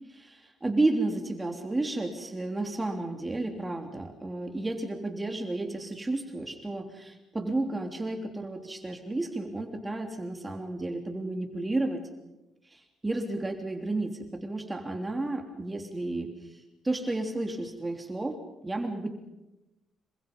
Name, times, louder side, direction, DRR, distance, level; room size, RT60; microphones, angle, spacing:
voice 1, 0.1-12.0 12.7-16.3 16.8-18.4 18.6-19.1, right 2 dB, 20° right, 4 dB, 3.3 m, -32 dB
27.5 x 23.0 x 5.5 m, 0.97 s
cardioid pair, 90°, 0 cm